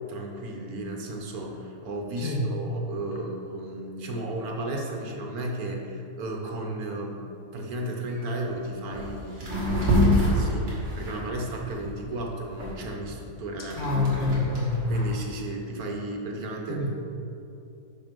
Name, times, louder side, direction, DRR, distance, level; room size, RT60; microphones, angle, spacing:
voice 1, 0.1-13.8 14.9-16.8, right 1 dB, 70° right, 1 dB, 1.4 m, -34 dB
sound 1, 8.4-8.5 8.9-9.1 9.4-12.1 12.6-15.1, left 1 dB, 50° right, 2.5 m, -26 dB
voice 2, 13.8-14.9 16.7-16.9, left 3 dB, 70° left, -2 dB, 1.8 m, -26 dB
6.5 x 6.1 x 5.2 m, 2.7 s
omnidirectional pair, 1.7 m